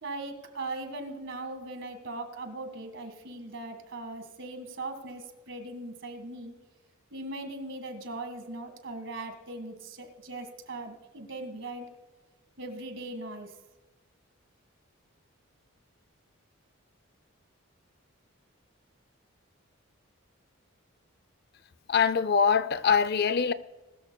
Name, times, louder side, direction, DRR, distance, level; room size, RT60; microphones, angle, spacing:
voice 1, 0.0-6.6 7.1-11.9 12.6-13.5, right 2 dB, 55° right, 1.7 m, -39 dB
voice 2, 21.9-23.5, left 6 dB, 45° left, 0.4 m, -23 dB
21.0 x 13.0 x 2.3 m
head